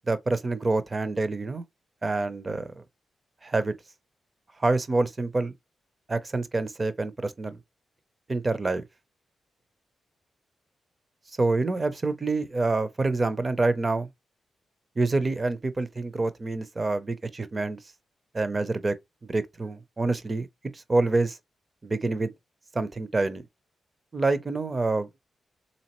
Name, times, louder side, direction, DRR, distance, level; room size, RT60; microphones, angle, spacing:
voice 1, 0.1-1.6 2.0-2.7 3.4-3.7 4.6-5.5 6.1-7.6 8.3-8.8 11.4-14.1 15.0-17.8 18.3-19.0 19.2-20.5 20.7-21.4 21.8-22.3 22.7-23.4 24.1-25.1, right 3 dB, 30° right, 0.6 m, -26 dB
4.1 x 3.5 x 3.0 m
wide cardioid pair, 115°, 0 cm